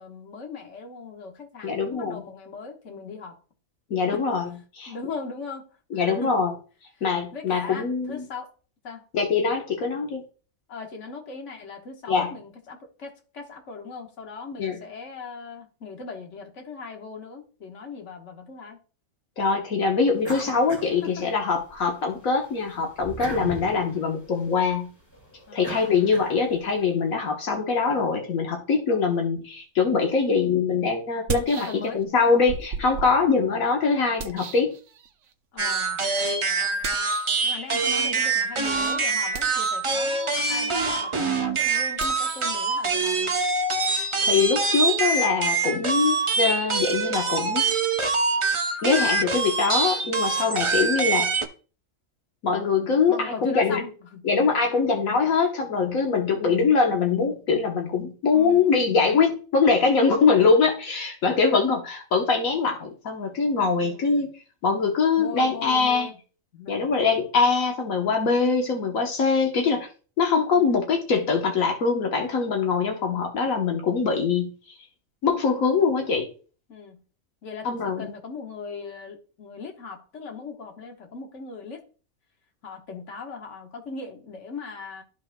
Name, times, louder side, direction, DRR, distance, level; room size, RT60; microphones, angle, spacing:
voice 1, 0.0-3.4 4.1-4.2 4.9-5.7 5.9-6.4 7.0-7.1 7.3-8.5 8.8-9.0 10.7-18.8 21.0-21.3 25.5-25.8 31.6-32.0 33.4-33.6 35.5-36.0 36.4-36.8 37.4-43.4 53.1-54.3 58.3-58.9 63.8-64.2 65.2-66.1 66.5-66.9 70.5-70.7 76.7-77.0 77.4-81.8 82.6-85.0, left 4 dB, 65° left, 1.6 m, -39 dB
voice 2, 1.6-2.2 3.9-4.5 4.7-4.9 5.9-6.5 7.0-8.2 9.1-10.2 12.1-12.3 14.6-14.8 19.4-24.9 25.5-34.8 43.9-47.6 48.8-51.3 52.4-53.8 54.2-64.3 64.6-66.1 66.7-69.9 70.2-74.5 75.2-76.3 77.6-78.1, left 5 dB, 85° left, 1.5 m, -23 dB
sound 1, 20.2-21.8 22.2-26.7, right 1 dB, 15° left, 2.0 m, -39 dB
sound 2, 30.1-30.2 31.1-32.1 32.5-35.3 36.8-37.5 39.2-40.0 41.9-44.5, right 6 dB, 70° right, 1.0 m, -38 dB
sound 3, 35.6-51.5, right 3 dB, 30° right, 0.6 m, -25 dB
13.0 x 5.2 x 2.2 m
omnidirectional pair, 1.4 m